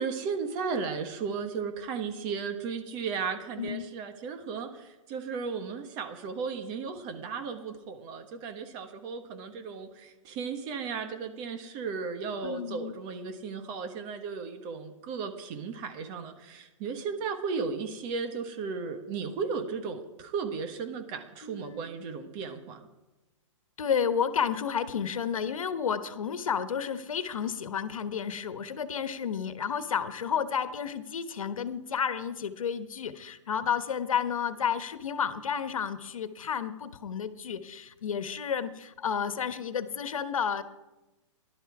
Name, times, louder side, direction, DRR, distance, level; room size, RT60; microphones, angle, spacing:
voice 1, 0.0-22.9, right 5 dB, 25° right, 7 dB, 1.3 m, -35 dB
voice 2, 3.6-3.9 12.4-12.9 21.4-21.9 23.8-40.6, left 7 dB, 90° left, 11 dB, 1.3 m, -31 dB
17.0 x 11.5 x 4.8 m, 1.1 s
hypercardioid pair, 160°, 17 cm